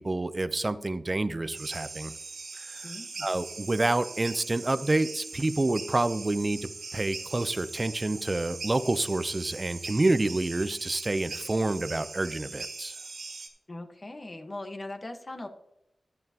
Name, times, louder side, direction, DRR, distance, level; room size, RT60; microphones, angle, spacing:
voice 1, 0.0-2.1 2.6-2.9 3.2-12.9, right 2 dB, 30° right, 13 dB, 0.6 m, -28 dB
sound 1, 1.5-13.5, right 4 dB, 90° right, 1.9 m, -41 dB
voice 2, 2.8-3.3 13.7-15.5, left 2 dB, 35° left, 5 dB, 1.3 m, -40 dB
11.5 x 11.0 x 2.9 m, 0.84 s
wide cardioid pair, 80°, 0 cm